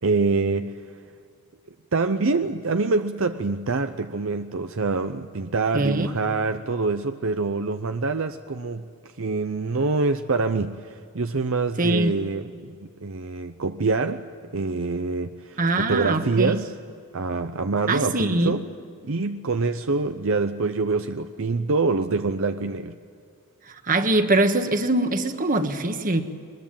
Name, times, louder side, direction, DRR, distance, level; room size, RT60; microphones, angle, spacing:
voice 1, 0.0-0.7 1.9-8.9 9.2-14.2 14.5-16.8 17.1-18.6 19.0-23.0, right 3 dB, 60° right, 8 dB, 0.7 m, -25 dB
voice 2, 5.7-6.1 11.8-12.1 15.6-16.6 17.9-18.5 23.9-26.2, right 2 dB, 40° right, 7 dB, 1.5 m, -22 dB
23.5 x 21.0 x 9.0 m, 2.3 s
head